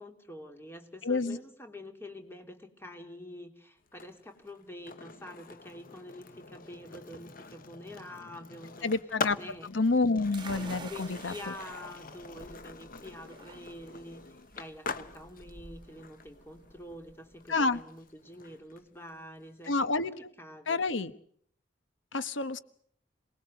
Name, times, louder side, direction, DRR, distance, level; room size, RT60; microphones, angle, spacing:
voice 1, 0.0-8.9 9.3-9.7 10.8-19.9 20.1-20.8, left 1 dB, 15° left, 5 dB, 3.1 m, -47 dB
voice 2, 1.0-1.4 8.8-9.4 9.6-11.5 17.5-17.8 19.7-20.3 20.7-21.1 22.1-22.6, left 3 dB, 85° left, 13 dB, 1.3 m, -29 dB
Skateboard, 3.9-19.7, left 4 dB, 50° left, 1.1 m, -44 dB
sound 1, 10.3-17.8, right 3 dB, 25° right, 2.0 m, -49 dB
27.5 x 19.5 x 7.9 m, 0.63 s
head